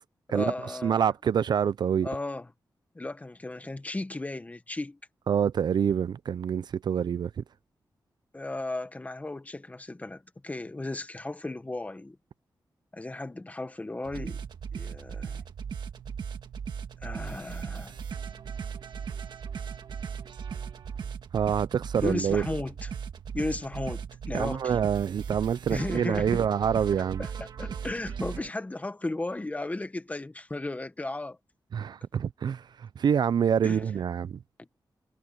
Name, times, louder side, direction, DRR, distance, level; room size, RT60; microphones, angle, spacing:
voice 1, 0.3-1.0 2.0-2.5 2.9-5.0 8.3-12.2 12.9-14.4 14.7-15.4 17.0-18.0 22.0-22.9 23.3-24.8 25.7-26.5 27.0-31.4 33.6-33.8 34.6-34.7, left 2 dB, 20° left, 1.4 m, -35 dB
voice 2, 0.8-2.1 5.3-7.4 21.3-22.4 24.3-27.3 31.7-34.4, right 8 dB, 70° right, 0.4 m, -26 dB
sound 1, 14.1-28.5, right 7 dB, 90° right, 1.6 m, -37 dB
wide cardioid pair, 125°, 8 cm